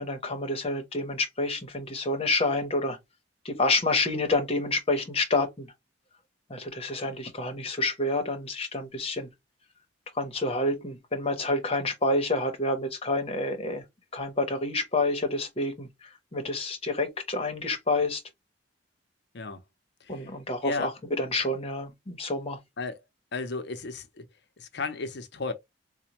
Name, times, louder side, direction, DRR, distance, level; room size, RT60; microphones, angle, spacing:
voice 1, 0.0-3.0 3.4-5.7 6.5-9.3 10.1-13.8 14.1-18.2 20.1-20.9 21.2-22.6, left 2 dB, 30° left, 0.9 m, -28 dB
voice 2, 23.3-24.3 24.6-25.5, left 3 dB, 60° left, 0.6 m, -34 dB
4.2 x 2.1 x 2.9 m
head